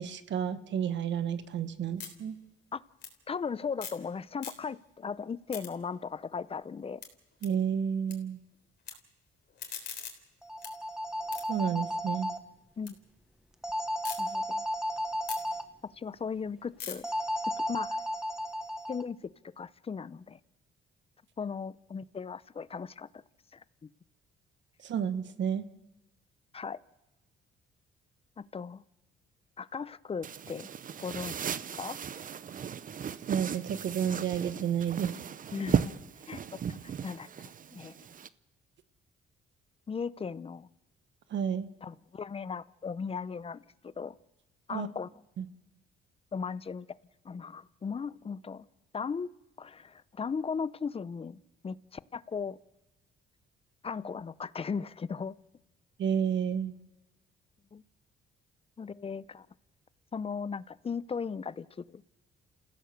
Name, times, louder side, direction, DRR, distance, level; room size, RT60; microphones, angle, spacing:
voice 1, 0.0-2.4 7.4-8.4 11.5-12.3 24.8-25.6 33.3-35.1 41.3-41.7 44.7-44.9 45.4-45.5 56.0-56.7, right 8 dB, 65° right, 12 dB, 1.3 m, -31 dB
sound 1, 1.1-4.1 4.3-5.0 5.3-8.2 8.4-8.9 9.3-12.9 13.3-14.2 14.6-18.8, left 7 dB, 60° left, 3.7 m, -46 dB
voice 2, 3.3-7.0 12.8-13.0 14.2-14.6 16.0-17.1 17.4-18.0 18.9-20.4 21.4-23.1 23.5-23.9 26.5-26.8 28.4-28.8 29.6-30.7 31.0-31.4 31.7-32.0 35.5-35.9 36.3-37.3 37.7-38.0 39.9-40.7 41.8-44.1 44.7-45.1 46.3-46.9 47.2-48.6 48.9-49.3 49.6-52.6 53.8-55.4 57.7-57.8 58.8-59.5 60.1-62.0, left 5 dB, 30° left, 18 dB, 0.6 m, -37 dB
sound 2, 10.4-12.4 13.6-15.6 17.0-19.0, equal, 5° right, 1.2 m, -33 dB
sound 3, 30.2-38.3, right 8 dB, 45° right, 0.7 m, -36 dB
29.0 x 16.0 x 6.6 m, 1.0 s
cardioid pair, 90°, 20 cm